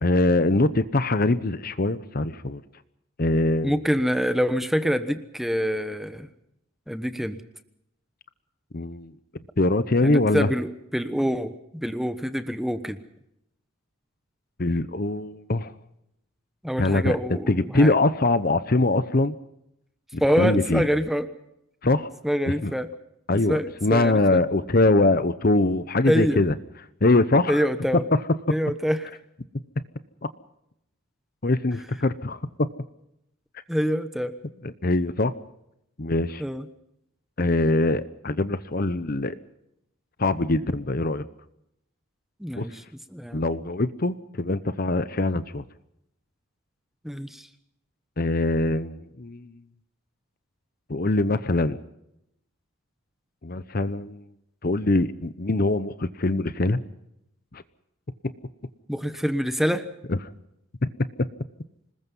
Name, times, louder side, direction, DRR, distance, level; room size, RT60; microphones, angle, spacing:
voice 1, 0.0-2.6 3.2-3.8 8.7-9.1 9.6-10.5 14.6-15.7 16.8-17.2 17.5-19.3 20.1-20.9 21.8-22.1 22.6-22.7 23.3-26.5 27.0-27.6 31.4-32.7 34.6-35.3 36.0-36.4 37.4-39.4 40.2-41.2 42.6-42.7 43.3-45.6 48.2-49.5 50.9-51.8 53.4-54.2 54.6-56.8 57.5-57.6 58.2-58.3 60.1-60.2 60.8-60.9 61.2-61.3, left 2 dB, 45° left, 13 dB, 0.9 m, -23 dB
voice 2, 3.6-6.3 6.9-7.4 10.0-13.0 16.6-17.9 20.2-21.3 22.2-22.9 23.3-24.4 26.1-26.4 27.5-28.0 28.5-29.1 33.7-34.4 36.4-36.7 42.4-42.8 43.1-43.4 47.0-47.5 58.9-59.9, equal, ahead, 10 dB, 1.1 m, -26 dB
26.5 x 20.5 x 5.5 m, 0.80 s
head